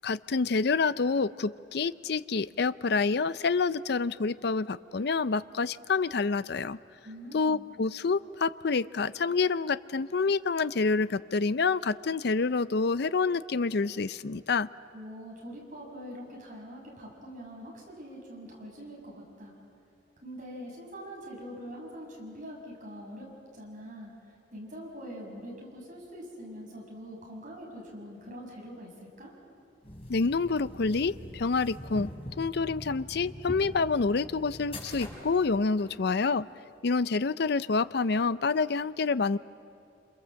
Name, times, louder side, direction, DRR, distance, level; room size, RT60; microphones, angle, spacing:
voice 1, 0.0-6.8 7.3-14.7 30.1-32.1 32.4-36.4 36.8-39.4, left 4 dB, 65° left, 16 dB, 0.5 m, -27 dB
voice 2, 7.0-7.7 14.9-19.5 20.2-23.3 23.5-29.3, equal, 45° right, -1 dB, 6.8 m, -44 dB
sound 1, 29.8-35.9, equal, 35° left, 5.8 m, -43 dB
27.5 x 27.5 x 7.6 m, 2.6 s
head